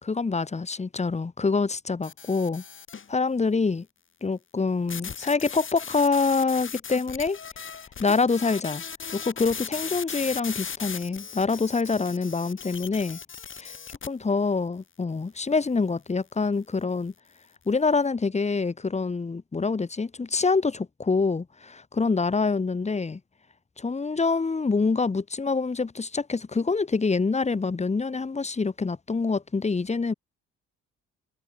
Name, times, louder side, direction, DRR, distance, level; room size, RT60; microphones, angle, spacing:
voice 1, 0.0-2.6 3.1-3.8 4.2-7.4 8.0-8.8 9.1-13.2 13.6-13.7 14.0-17.1 17.7-23.2 23.8-30.1, left 4 dB, 20° left, 1.5 m, -26 dB
sound 1, 2.0-3.1 4.9-14.1, left 6 dB, 40° left, 3.7 m, -37 dB
cardioid pair, 90°, 30 cm